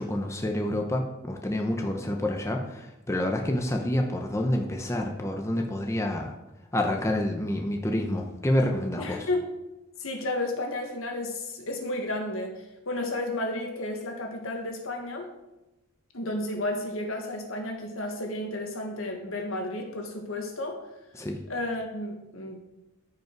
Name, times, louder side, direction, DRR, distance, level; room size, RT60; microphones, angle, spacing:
voice 1, 0.0-6.3 6.7-9.2 21.1-21.4, left 1 dB, 15° left, 2 dB, 0.8 m, -28 dB
voice 2, 8.9-9.5 10.0-15.3 16.1-20.8 21.5-22.6, left 1 dB, 65° left, 3 dB, 1.7 m, -32 dB
14.0 x 5.4 x 4.6 m, 0.99 s
head